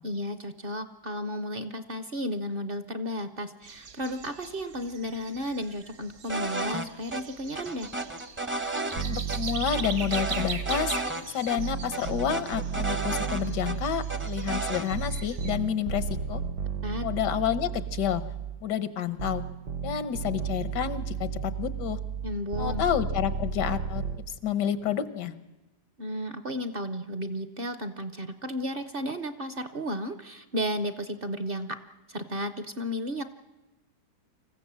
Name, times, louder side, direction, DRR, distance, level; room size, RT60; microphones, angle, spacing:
voice 1, 0.0-7.9 16.8-17.1 22.2-22.8 26.0-31.8 32.1-33.2, equal, 45° right, 11 dB, 0.8 m, -33 dB
sound 1, 3.6-15.6, right 6 dB, 65° right, 1.7 m, -41 dB
sound 2, 6.3-6.9 7.1-7.2 7.6-9.0 9.3-9.4 9.7-11.2 11.5-11.6 11.9-13.8 14.1-14.9, right 2 dB, 10° right, 0.5 m, -32 dB
voice 2, 9.0-11.0 11.3-16.4 17.0-18.3 18.6-19.4 19.8-22.0 22.6-25.4, left 9 dB, 90° left, 14 dB, 1.6 m, -29 dB
sound 3, 9.0-11.1 11.6-18.7 19.2-24.2, right 6 dB, 80° right, 1.5 m, -33 dB
25.5 x 15.0 x 7.5 m, 1.0 s
omnidirectional pair, 1.8 m